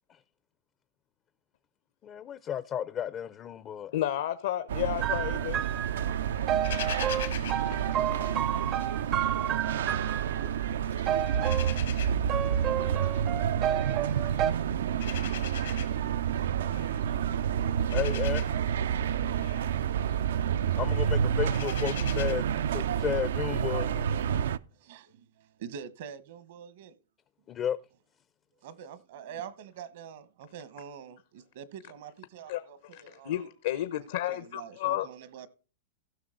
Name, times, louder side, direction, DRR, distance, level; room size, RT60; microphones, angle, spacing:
voice 1, 2.0-3.9 17.9-18.4 20.8-24.1 27.5-27.8, left 9 dB, 25° left, 0.4 m, -33 dB
voice 2, 3.9-5.6 7.4-7.8 8.0-8.2 32.5-32.6 32.9-35.1, left 13 dB, 70° left, 0.8 m, -32 dB
sound 1, 4.7-24.6, right 8 dB, 85° right, 0.4 m, -29 dB
sound 2, 5.0-10.5 11.1-11.8 12.3-14.5, right 10 dB, 30° right, 0.5 m, -31 dB
sound 3, 6.6-8.9 9.2-10.5 10.8-22.3, left 11 dB, 90° left, 2.0 m, -43 dB
voice 3, 24.7-27.0 28.6-33.4 34.0-35.5, right 8 dB, 65° right, 1.0 m, -45 dB
16.0 x 6.0 x 3.8 m
supercardioid pair, 155°, 0 cm